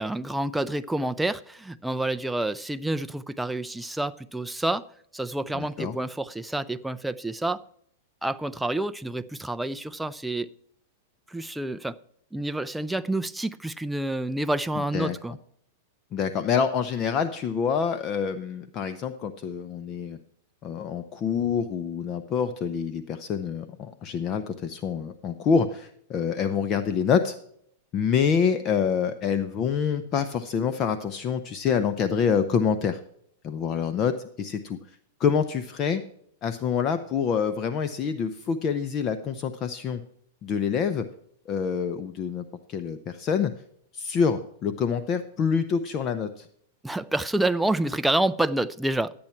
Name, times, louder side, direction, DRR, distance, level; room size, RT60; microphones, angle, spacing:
voice 1, 0.0-4.9 5.1-7.6 8.2-10.5 11.3-12.0 12.3-15.4 46.8-49.1, right 1 dB, 5° right, 0.5 m, -28 dB
voice 2, 5.5-6.0 14.9-15.2 16.1-20.2 20.6-27.4 27.9-33.0 33.4-34.8 35.2-36.0 36.4-40.0 40.4-41.1 41.5-43.5 43.9-46.5, left 6 dB, 30° left, 0.7 m, -26 dB
12.0 x 8.7 x 4.5 m
supercardioid pair, 140°, 0 cm